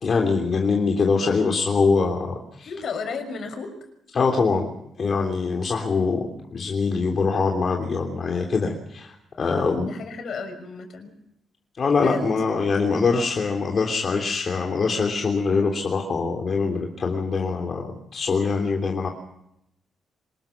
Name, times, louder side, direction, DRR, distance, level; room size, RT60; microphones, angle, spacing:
voice 1, 0.0-2.7 4.1-4.7 5.0-9.9 11.8-19.1, left 4 dB, 45° left, 2 dB, 3.4 m, -23 dB
voice 2, 2.7-3.7 9.8-11.1 12.0-12.3, left 5 dB, 60° left, 7 dB, 6.0 m, -33 dB
25.0 x 20.5 x 6.1 m, 0.80 s
cardioid pair, 100°, 0 cm